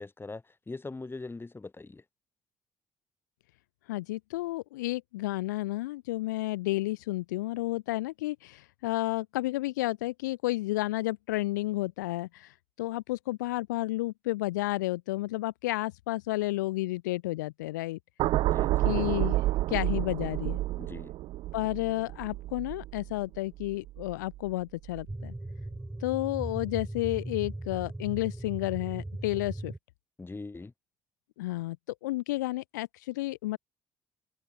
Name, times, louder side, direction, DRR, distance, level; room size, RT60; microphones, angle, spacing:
voice 1, 0.0-2.0 18.4-18.9 20.8-21.1 30.2-30.7, left 3 dB, 25° left, 2.7 m, -42 dB
voice 2, 3.9-18.0 18.8-19.4 19.7-20.6 21.5-25.3 26.0-29.7 31.4-31.8 32.0-33.6, left 18 dB, 85° left, 0.4 m, -31 dB
sound 1, 18.2-24.5 24.9-25.1, right 16 dB, 70° right, 1.9 m, -30 dB
sound 2, 25.1-29.8, right 1 dB, 10° right, 2.2 m, -38 dB
hypercardioid pair, 50°, 10 cm